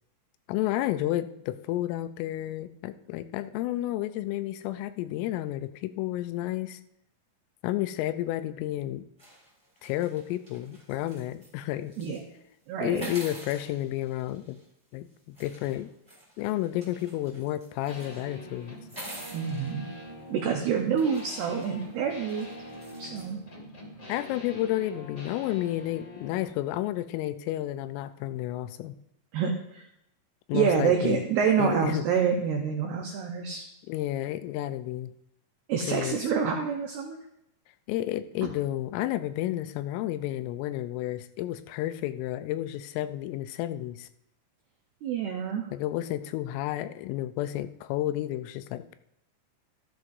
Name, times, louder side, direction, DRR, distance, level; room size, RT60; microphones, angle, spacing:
voice 1, 0.5-6.8 7.6-9.1 9.8-11.9 12.8-14.6 14.9-15.9 16.4-18.8 24.1-29.0 30.5-31.2 31.6-32.0 33.9-35.1 35.9-36.2 37.9-44.1 45.7-48.9, left 14 dB, 85° left, 11 dB, 3.2 m, -31 dB
sound 1, 9.2-11.5 11.9-12.2 12.9-14.7 15.3-18.2 18.8-19.7 20.4-20.5 21.0-23.3, right 1 dB, 5° right, 2.6 m, -47 dB
voice 2, 12.7-13.1 19.3-19.9 20.3-22.5 23.0-23.4 29.3-29.9 30.5-33.6 35.7-37.2 38.4-38.5 45.0-45.7, right 6 dB, 90° right, 3 dB, 2.2 m, -27 dB
sound 2, 17.8-26.5, equal, 40° left, 1.0 m, -45 dB
13.0 x 12.5 x 2.7 m, 0.80 s
omnidirectional pair, 5.8 m